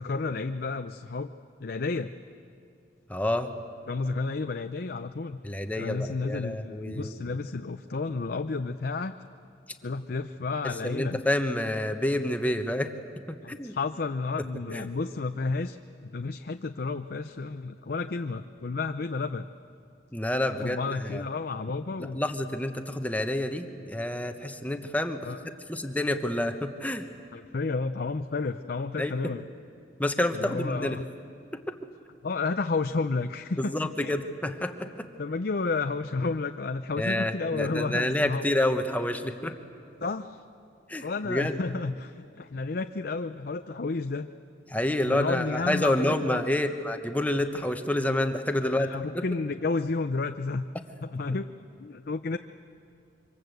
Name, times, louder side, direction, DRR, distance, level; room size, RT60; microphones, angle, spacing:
voice 1, 0.0-1.3 1.6-2.1 3.9-5.4 5.8-9.2 9.8-11.2 13.4-15.8 16.0-19.4 20.5-22.2 25.2-25.5 27.3-29.5 30.3-31.1 32.2-34.1 35.2-38.5 40.0-40.4 41.0-44.3 45.0-46.4 48.6-50.7 51.0-51.5 51.8-52.4, left 3 dB, 55° left, 8 dB, 0.6 m, -31 dB
voice 2, 3.1-3.5 5.4-7.2 10.8-12.9 13.5-13.7 14.4-14.5 14.7-14.8 20.1-21.2 22.0-25.3 25.7-27.0 29.0-29.1 30.0-31.0 31.5-31.8 33.6-35.1 37.0-39.6 40.9-41.6 44.7-48.9 49.1-49.2, left 1 dB, 10° left, 6 dB, 1.1 m, -28 dB
26.5 x 25.0 x 8.0 m, 2.6 s
head